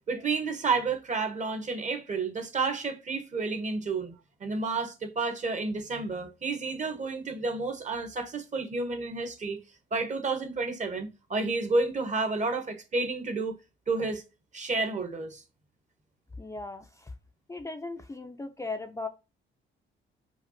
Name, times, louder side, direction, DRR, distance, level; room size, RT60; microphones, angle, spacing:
voice 1, 0.1-4.1 4.4-9.6 9.9-13.6 13.9-14.2 14.5-15.4, right 3 dB, 35° right, 1.0 m, -30 dB
voice 2, 16.4-17.1 17.5-19.1, left 3 dB, 15° left, 0.4 m, -37 dB
5.0 x 2.4 x 2.7 m
cardioid pair, 90°, 20 cm